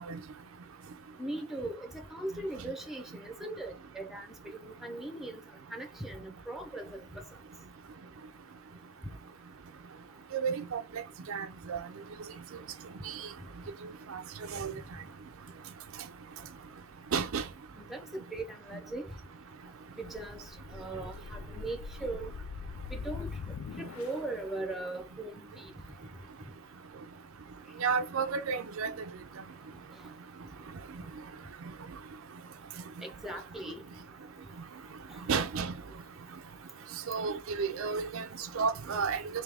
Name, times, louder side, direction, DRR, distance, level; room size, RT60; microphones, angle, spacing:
voice 1, 1.2-4.3 4.5-5.4 5.7-7.2 17.7-19.1 20.0-20.4 20.7-22.3 22.9-23.3 23.8-25.7 33.0-33.8 35.1-35.2, right 2 dB, ahead, 0.6 m, -39 dB
voice 2, 10.3-10.8 11.3-11.8 13.1-13.2 14.1-14.2 14.5-14.7 17.1-17.4 27.8-28.9 35.3-35.7 37.1-38.2 38.5-39.2, right 5 dB, 70° right, 0.5 m, -31 dB
sound 1, 20.0-24.4, left 5 dB, 75° left, 0.4 m, -43 dB
3.5 x 2.8 x 3.4 m
head